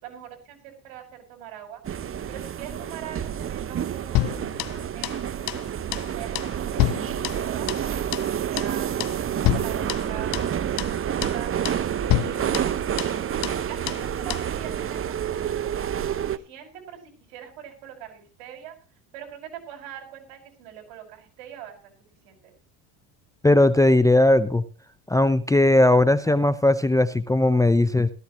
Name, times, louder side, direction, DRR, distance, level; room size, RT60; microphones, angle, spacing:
voice 1, 0.0-1.8 2.3-5.2 6.1-7.7 8.3-9.1 9.5-11.6 12.1-12.7 13.6-15.7 16.1-17.0 17.3-18.8 19.1-21.8 22.2-22.5, right 10 dB, 70° right, 3 dB, 5.3 m, -42 dB
sound 1, 1.8-16.4, right 9 dB, 30° right, 0.8 m, -28 dB
sound 2, 4.1-5.2 5.5-5.7 5.9-6.1 6.3-8.3 8.6-8.7 9.0-9.2 9.4-10.5 10.8-10.9 11.2-11.4 11.6-11.8 12.1-13.2 13.4-13.6 13.9-14.0 14.3-14.5, left 16 dB, 50° left, 0.7 m, -28 dB
voice 2, 23.4-24.6 25.1-28.1, left 1 dB, 10° left, 14 dB, 0.6 m, -18 dB
16.5 x 14.0 x 3.1 m, 0.33 s
supercardioid pair, 90°, 44 cm